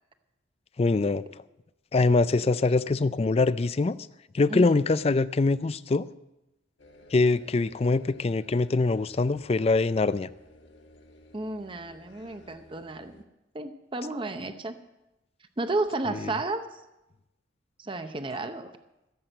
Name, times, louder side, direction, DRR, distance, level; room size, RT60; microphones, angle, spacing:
voice 1, 0.8-1.2 1.9-4.0 4.3-6.1 7.1-10.3, left 3 dB, 30° left, 16 dB, 0.4 m, -23 dB
voice 2, 4.5-4.8 11.3-13.2 13.5-14.8 15.6-16.8 17.8-18.7, right 2 dB, 25° right, 9 dB, 0.7 m, -32 dB
sound 1, 6.8-13.2, left 1 dB, 70° left, 1.7 m, -54 dB
15.5 x 7.7 x 7.8 m, 0.95 s
head